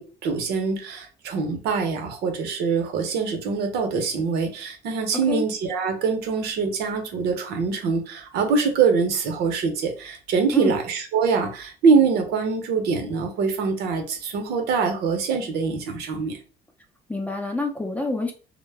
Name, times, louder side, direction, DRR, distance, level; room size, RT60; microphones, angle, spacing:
voice 1, 0.0-16.4, right 5 dB, 75° right, 4 dB, 0.7 m, -24 dB
voice 2, 17.1-18.3, left 2 dB, 10° left, 2 dB, 0.5 m, -26 dB
2.1 x 2.0 x 3.3 m, 0.36 s
cardioid pair, 110°, 17 cm